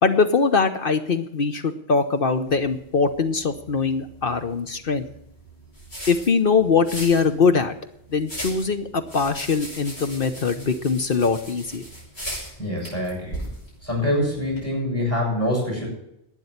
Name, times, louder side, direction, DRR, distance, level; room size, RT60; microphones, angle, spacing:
voice 1, 0.0-5.1 6.1-7.7 8.1-11.8, left 5 dB, 60° left, 9 dB, 1.1 m, -22 dB
sound 1, 2.5-14.6, equal, 75° left, 7.4 m, -39 dB
voice 2, 12.6-13.4 13.8-15.9, left 1 dB, 15° left, -1 dB, 7.6 m, -25 dB
12.0 x 9.2 x 9.7 m, 0.81 s
omnidirectional pair, 1.1 m